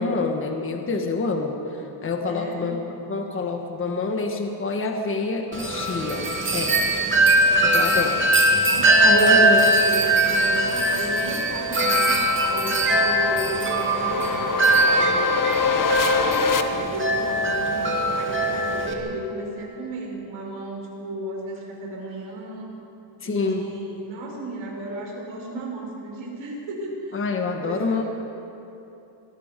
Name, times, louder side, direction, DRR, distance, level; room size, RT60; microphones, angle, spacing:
voice 1, 0.0-6.8 7.6-8.2 9.0-9.6 23.2-23.6 27.1-28.0, left 3 dB, 25° left, 3 dB, 1.5 m, -27 dB
voice 2, 2.3-2.7 7.6-7.9 8.6-15.6 16.2-22.7 23.2-27.3 27.6-28.0, right 1 dB, 80° right, -1 dB, 5.7 m, -34 dB
Wind chime, 5.5-18.9, right 1 dB, 25° right, 2.1 m, -21 dB
sound 1, 10.0-16.6, left 5 dB, 40° left, 1.1 m, -26 dB
26.0 x 19.0 x 5.2 m, 3.0 s
cardioid pair, 170°, 47 cm